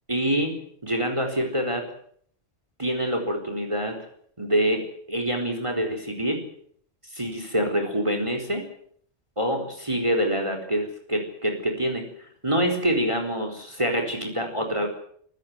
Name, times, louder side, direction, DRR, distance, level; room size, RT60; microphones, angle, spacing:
voice 1, 0.1-0.5 0.8-1.9 2.8-4.0 4.4-6.4 7.1-8.7 9.4-12.0 12.4-14.9, equal, 25° right, 5 dB, 4.3 m, -26 dB
26.0 x 15.5 x 9.7 m, 0.64 s
omnidirectional pair, 1.2 m